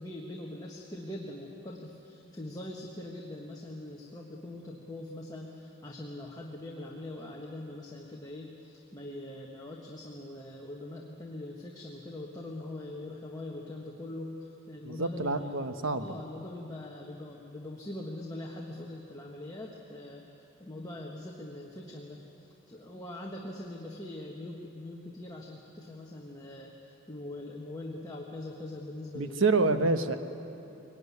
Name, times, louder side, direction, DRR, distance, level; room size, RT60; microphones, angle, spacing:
voice 1, 0.0-15.5 15.9-20.3 20.6-29.5, left 1 dB, 15° left, -1 dB, 1.4 m, -42 dB
voice 2, 14.8-16.1 29.1-30.2, right 3 dB, 60° right, 9 dB, 1.1 m, -27 dB
22.5 x 18.5 x 9.7 m, 2.9 s
head